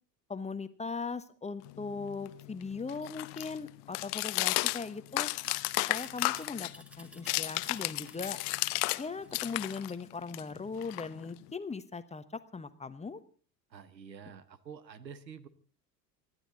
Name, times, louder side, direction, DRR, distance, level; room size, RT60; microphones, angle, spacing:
voice 1, 0.3-5.3 5.9-6.7 7.0-8.4 9.0-13.2, left 4 dB, 15° left, 12 dB, 1.0 m, -39 dB
sound 1, 1.6-9.0 9.3-11.5, left 23 dB, 50° left, 0.8 m, -34 dB
sound 2, 5.4-9.9, equal, ahead, 2.0 m, -56 dB
voice 2, 13.7-15.5, right 7 dB, 85° right, 16 dB, 1.2 m, -48 dB
25.5 x 10.5 x 3.9 m, 0.42 s
figure-of-eight pair, 70°, 50 cm